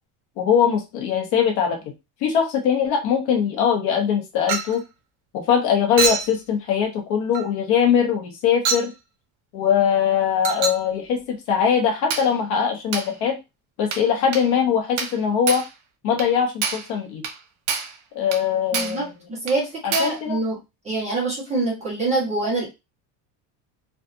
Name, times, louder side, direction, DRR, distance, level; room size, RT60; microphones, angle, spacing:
voice 1, 0.4-1.8 2.2-4.8 5.3-8.9 9.5-13.4 13.8-15.6 16.0-17.2 18.1-19.0 19.8-20.4, left 7 dB, 60° left, 4 dB, 0.7 m, -21 dB
Chink clink, 4.5-4.8 6.0-6.3 7.3-7.5 8.7-8.9 10.4-10.9 12.1-12.3 12.9-13.1 13.9-14.1 14.3-14.5 15.0-15.2 15.5-15.7 16.2-16.3 16.6-16.9 17.2-17.4 17.7-18.0 18.3-18.5 18.7-19.0 19.5-19.6 19.9-20.2, right 5 dB, 85° right, 0.8 m, -26 dB
voice 2, 18.7-20.6 20.8-22.7, right 2 dB, 15° right, -4 dB, 0.9 m, -25 dB
2.6 x 2.3 x 2.4 m, 0.24 s
cardioid pair, 175°, 43 cm